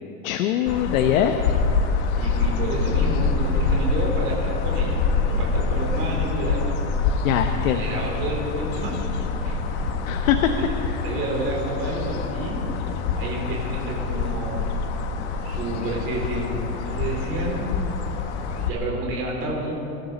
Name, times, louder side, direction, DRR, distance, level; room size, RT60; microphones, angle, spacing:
voice 1, 0.2-1.3 7.2-7.9 10.1-10.5 10.8-11.0, left 10 dB, 65° left, 6 dB, 1.0 m, -22 dB
sound 1, 0.7-18.7, left 4 dB, 50° left, 1.4 m, -25 dB
voice 2, 2.2-6.7 7.5-8.9 9.4-9.6 11.0-12.6 13.1-14.7 15.4-17.7 18.6-19.7, right 2 dB, 30° right, -3 dB, 4.0 m, -30 dB
25.5 x 12.5 x 4.0 m, 2.9 s
supercardioid pair, 180°, 43 cm